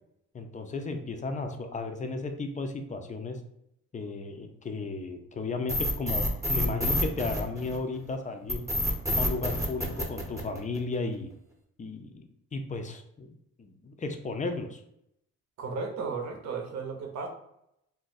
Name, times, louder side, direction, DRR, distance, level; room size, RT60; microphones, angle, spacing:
voice 1, 0.3-3.4 3.9-8.6 9.2-11.3 11.8-12.2 12.5-14.8, left 3 dB, 25° left, 6 dB, 0.4 m, -34 dB
sound 1, 5.7-8.0 8.5-10.9, left 1 dB, 10° right, 0.8 m, -28 dB
voice 2, 15.6-17.3, right 4 dB, 60° right, 3 dB, 0.8 m, -34 dB
2.5 x 2.1 x 3.9 m, 0.77 s
cardioid pair, 90°, 30 cm